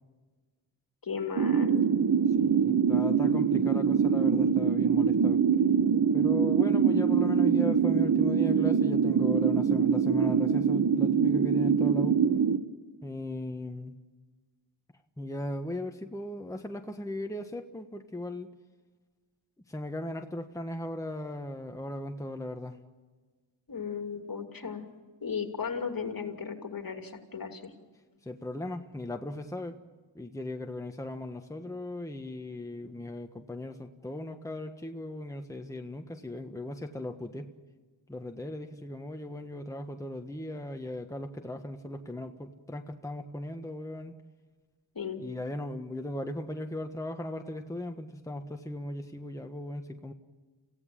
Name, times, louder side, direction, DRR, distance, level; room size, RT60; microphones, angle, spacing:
voice 1, 1.0-1.9 23.7-24.8 25.2-27.7 44.9-45.2, left 6 dB, 50° left, 5 dB, 2.7 m, -36 dB
sound 1, 1.4-12.6, right 6 dB, 50° right, 1.3 m, -24 dB
voice 2, 2.4-5.4 6.1-12.2 13.0-13.9 15.2-18.5 19.7-22.8 28.2-29.8 30.1-37.5 38.1-44.1 45.2-50.1, left 1 dB, 5° left, 4 dB, 1.4 m, -37 dB
28.0 x 16.5 x 7.6 m, 1.4 s
cardioid pair, 65°, 44 cm